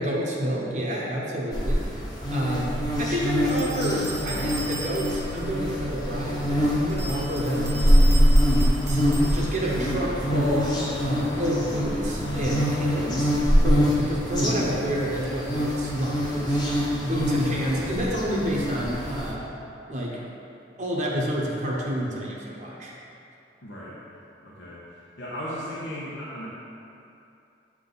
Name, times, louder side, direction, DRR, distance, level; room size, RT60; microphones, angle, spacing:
voice 1, 0.0-1.9 2.3-7.9 8.8-10.7 11.0-13.3 13.6-16.6 17.0-19.5 19.9-20.2 20.8-22.9, equal, 40° right, -3 dB, 0.8 m, -29 dB
sound 1, 1.5-19.3, equal, 25° left, 0.9 m, -24 dB
sound 2, 3.5-5.4 6.9-9.8, right 2 dB, 15° right, 0.3 m, -38 dB
voice 2, 23.6-24.0 24.4-24.8 25.2-26.5, equal, 85° left, -8 dB, 1.0 m, -36 dB
8.1 x 3.6 x 4.0 m, 2.7 s
head